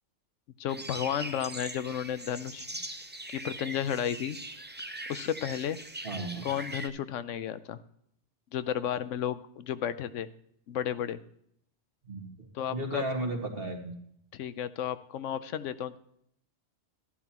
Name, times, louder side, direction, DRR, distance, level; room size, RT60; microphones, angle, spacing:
voice 1, 0.6-2.7 3.3-4.4 5.1-5.8 6.4-7.8 8.5-10.3 10.7-11.2 12.5-13.0 14.3-16.0, left 9 dB, 90° left, 14 dB, 1.0 m, -33 dB
sound 1, 0.7-6.9, right 1 dB, 15° right, 0.5 m, -41 dB
voice 2, 6.0-6.5 12.1-14.0, right 1 dB, 50° right, 2 dB, 2.1 m, -35 dB
13.0 x 11.0 x 2.9 m, 0.69 s
omnidirectional pair, 1.2 m